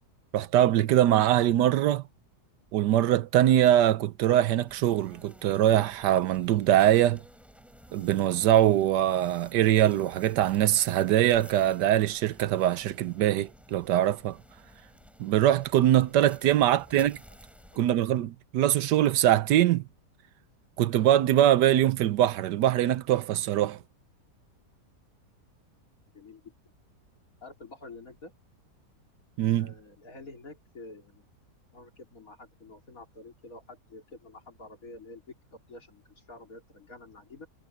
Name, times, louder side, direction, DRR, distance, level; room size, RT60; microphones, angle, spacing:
voice 1, 0.3-2.0 2.7-7.2 7.9-14.4 15.2-17.2 17.8-19.8 20.8-23.8 29.4-29.7, right 12 dB, 90° right, 1.3 m, -23 dB
sound 1, 4.7-17.8, equal, ahead, 7.0 m, -53 dB
voice 2, 16.7-17.1 17.7-17.8 26.1-26.5 27.4-28.3 29.6-31.3 31.7-37.5, left 2 dB, 55° left, 3.9 m, -48 dB
omnidirectional pair, 1.8 m